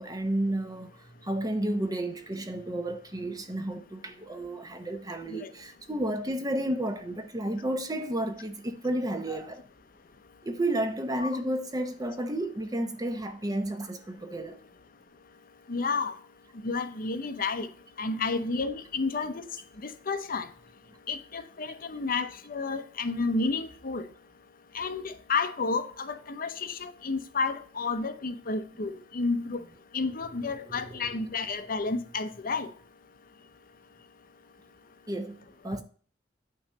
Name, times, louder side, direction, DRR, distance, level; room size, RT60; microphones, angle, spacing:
voice 1, 0.0-9.6 10.4-14.6 29.6-29.7 30.2-31.3 35.1-35.4 35.6-35.8, right 1 dB, 20° right, 0.8 m, -32 dB
voice 2, 15.7-16.1 16.6-17.7 18.0-19.4 19.8-20.5 21.1-24.0 24.7-29.6 29.9-32.7, left 4 dB, 50° left, 0.7 m, -31 dB
8.8 x 3.2 x 6.5 m
head